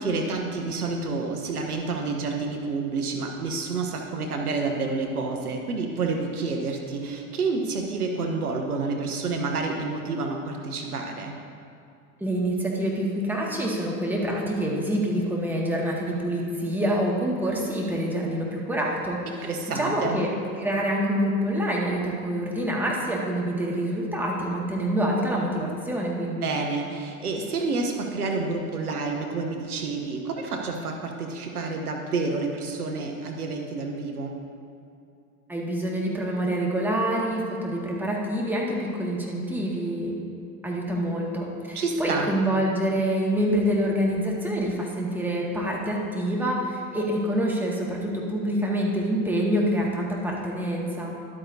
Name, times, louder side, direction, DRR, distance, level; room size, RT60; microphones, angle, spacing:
voice 1, 0.0-11.4 19.4-20.2 26.4-34.3 41.7-42.3, right 3 dB, 90° right, 3 dB, 1.0 m, -29 dB
voice 2, 12.2-19.5 19.7-20.3 20.6-26.5 35.5-40.2 40.6-51.2, right 1 dB, 5° right, -3 dB, 1.9 m, -26 dB
12.0 x 8.6 x 2.7 m, 2.6 s
hypercardioid pair, 85°, 44 cm